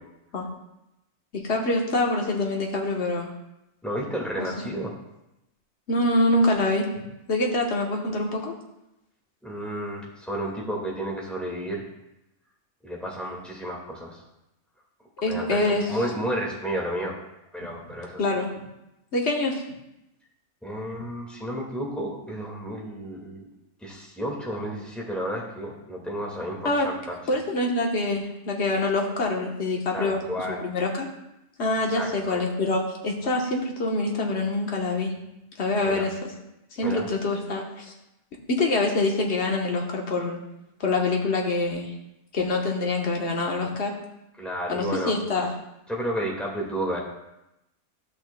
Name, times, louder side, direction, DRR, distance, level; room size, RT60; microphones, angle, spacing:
voice 1, 1.3-3.3 4.6-4.7 5.9-8.5 15.2-15.9 18.2-18.5 19.1-19.6 26.6-26.9 27.3-30.2 30.5-31.1 31.6-35.1 35.6-36.1 36.8-37.9 38.5-40.4 40.8-41.9 42.3-43.9 44.7-45.5, left 2 dB, 55° left, 0 dB, 1.4 m, -25 dB
voice 2, 3.8-5.0 9.4-11.8 12.8-14.2 15.3-17.1 17.5-18.2 20.6-23.5 23.8-27.2 29.9-30.7 31.9-32.5 35.8-36.1 36.8-37.1 44.4-45.1 45.9-47.0, right 1 dB, ahead, -3 dB, 1.7 m, -32 dB
14.0 x 6.0 x 2.2 m, 0.90 s
omnidirectional pair, 1.5 m